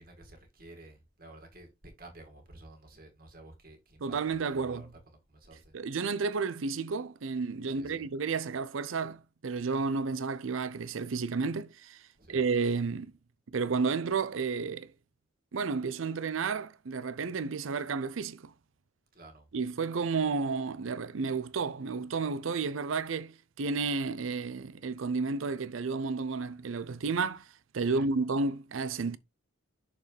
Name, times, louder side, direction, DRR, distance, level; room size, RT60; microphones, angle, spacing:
voice 1, 0.0-5.7 7.7-8.1 10.1-10.2 12.2-12.4 19.1-19.5 27.8-28.1, right 2 dB, 45° right, 2.1 m, -52 dB
voice 2, 4.0-4.8 5.7-12.0 12.3-13.1 13.5-14.9 15.5-18.5 19.5-27.4 27.7-29.2, right 4 dB, 85° right, 0.5 m, -31 dB
6.6 x 6.0 x 3.3 m
head